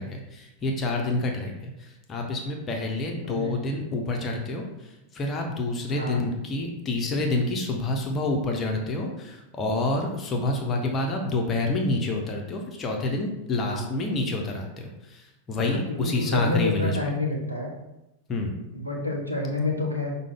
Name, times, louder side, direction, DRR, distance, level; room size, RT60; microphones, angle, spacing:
voice 1, 0.0-17.0 18.3-18.5, left 2 dB, 25° left, 1 dB, 0.6 m, -28 dB
voice 2, 3.2-3.6 5.9-6.2 13.6-13.8 15.7-17.7 18.7-20.2, left 2 dB, 85° right, -1 dB, 0.7 m, -29 dB
5.0 x 2.2 x 3.5 m, 0.92 s
figure-of-eight pair, 90°, 0 cm